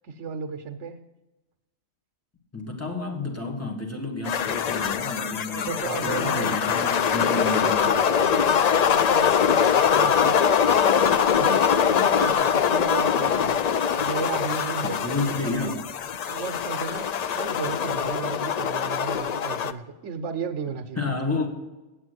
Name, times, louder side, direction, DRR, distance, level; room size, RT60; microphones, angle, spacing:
voice 1, 0.0-1.0 5.3-6.5 7.1-15.0 15.3-15.8 16.3-21.1, right 5 dB, 85° right, 5 dB, 1.1 m, -35 dB
voice 2, 2.5-7.9 14.8-15.8 21.0-21.5, left 3 dB, 15° left, 2 dB, 1.5 m, -30 dB
sound 1, 4.2-19.7, left 7 dB, 65° left, 0.4 m, -23 dB
8.4 x 8.3 x 7.9 m, 1.1 s
omnidirectional pair, 1.2 m